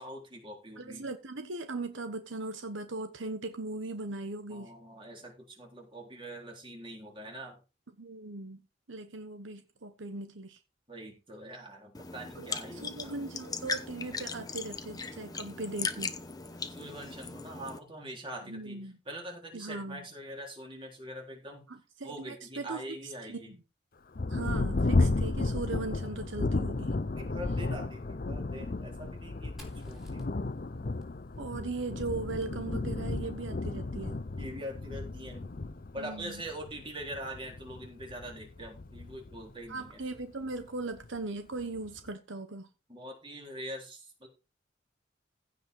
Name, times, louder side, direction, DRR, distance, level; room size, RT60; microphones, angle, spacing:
voice 1, 0.0-1.1 4.5-7.6 10.9-13.1 16.7-21.6 22.0-23.6 27.1-30.4 34.4-35.6 35.9-40.0 42.9-44.3, right 1 dB, 25° right, 3.8 m, -43 dB
voice 2, 0.8-4.7 8.0-8.6 8.9-10.6 12.3-16.2 18.5-19.0 19.5-20.0 21.7-23.6 24.3-27.0 31.4-34.2 36.0-36.4 39.7-42.7, right 3 dB, 75° right, 1.1 m, -39 dB
sound 1, 11.9-17.8, left 4 dB, 20° left, 0.9 m, -38 dB
Thunder, 24.1-40.2 41.0-41.1 41.6-42.1, left 2 dB, 45° left, 0.6 m, -33 dB
Fire, 29.6-33.3, equal, ahead, 3.4 m, -58 dB
16.0 x 5.4 x 4.6 m
head